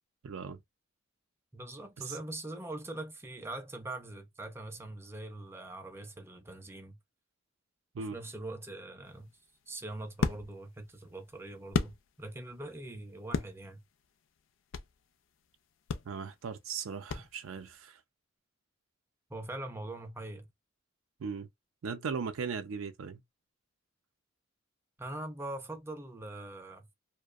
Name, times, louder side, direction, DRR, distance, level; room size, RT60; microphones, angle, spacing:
voice 1, 0.2-0.6 7.9-8.2 16.1-18.0 21.2-21.5 21.8-23.2, right 5 dB, 85° right, 0.4 m, -38 dB
voice 2, 1.5-7.0 8.0-9.3 9.7-13.8 19.3-20.5 25.0-26.9, right 2 dB, 10° right, 0.4 m, -42 dB
sound 1, 9.1-12.5 12.9-15.1 15.4-15.5 15.9-17.7, left 5 dB, 65° left, 0.4 m, -36 dB
2.6 x 2.1 x 2.3 m
head